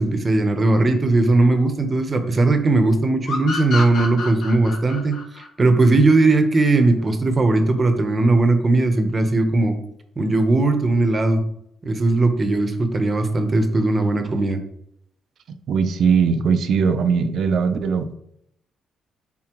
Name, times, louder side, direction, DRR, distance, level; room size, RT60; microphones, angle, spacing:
voice 1, 0.0-5.2 5.6-9.7 10.2-11.4 11.8-14.6, right 2 dB, 30° right, 7 dB, 0.9 m, -18 dB
sound 1, 3.3-6.6, left 4 dB, 70° left, 1.2 m, -30 dB
voice 2, 15.5-18.1, right 6 dB, 70° right, 8 dB, 0.6 m, -20 dB
7.5 x 4.2 x 3.0 m, 0.74 s
cardioid pair, 90°, 0 cm